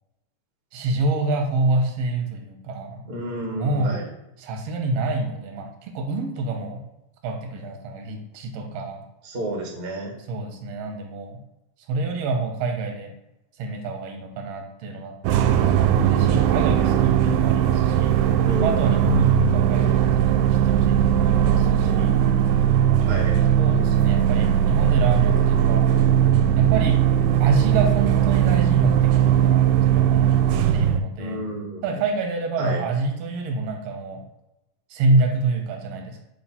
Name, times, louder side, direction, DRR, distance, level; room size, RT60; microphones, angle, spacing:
voice 1, 0.7-3.0 3.5-4.0 4.4-6.8 7.2-9.0 10.3-11.4 11.9-13.1 13.6-18.2 18.6-22.3 23.6-25.9 26.6-27.0 27.4-30.4 30.7-31.4 31.8-34.2 34.9-36.2, right 3 dB, 65° right, 3 dB, 1.8 m, -27 dB
voice 2, 3.0-4.0 9.2-10.1 18.4-19.4 23.1-23.4 31.2-31.9 32.6-32.8, right 1 dB, 45° right, 0 dB, 1.3 m, -31 dB
sound 1, 15.2-31.0, right 10 dB, 85° right, 2.0 m, -19 dB
4.7 x 3.9 x 5.7 m, 0.91 s
omnidirectional pair, 3.6 m